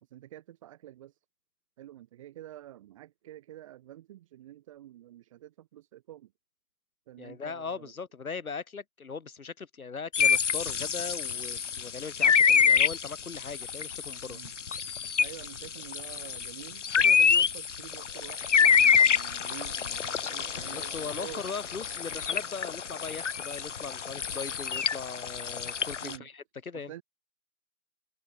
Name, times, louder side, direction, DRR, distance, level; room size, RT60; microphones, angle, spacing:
voice 1, 0.0-1.2 1.8-6.3 7.1-7.9 14.3-14.5 15.2-21.4 26.0-26.3 26.7-27.0, right 13 dB, 25° right, 2.5 m, -48 dB
voice 2, 7.2-14.4 20.6-26.9, left 5 dB, 80° left, 2.1 m, -39 dB
sound 1, 10.1-26.2, left 7 dB, 60° left, 1.2 m, -27 dB
open air
hypercardioid pair, 160°, 42 cm